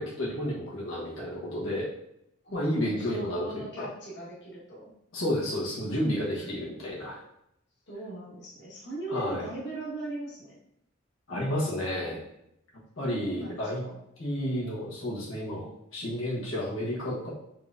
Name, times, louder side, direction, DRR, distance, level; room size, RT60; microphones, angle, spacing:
voice 1, 0.0-1.9 2.5-3.9 5.1-7.2 9.1-9.5 11.3-12.2 13.0-13.8 14.2-17.3, left 1 dB, 90° left, -6 dB, 1.3 m, -31 dB
voice 2, 2.4-4.9 6.2-6.7 7.9-10.6 13.0-14.0, right 2 dB, 55° left, -6 dB, 1.3 m, -39 dB
4.5 x 3.5 x 2.6 m, 0.77 s
head